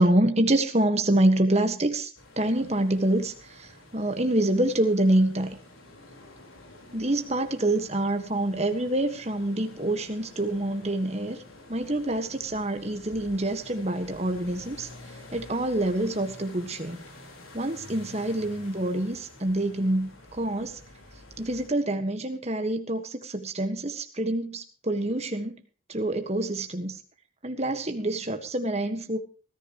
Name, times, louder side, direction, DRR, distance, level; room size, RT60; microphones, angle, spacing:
voice 1, 0.0-2.1 2.4-5.6 6.9-11.4 11.7-14.9 15.3-17.0 17.5-20.8 21.4-25.6 25.9-27.0 27.4-29.2, right 1 dB, 30° right, 7 dB, 1.6 m, -26 dB
sound 1, 2.1-21.7, left 2 dB, 85° left, 4.6 m, -49 dB
19.5 x 14.0 x 3.1 m, 0.38 s
head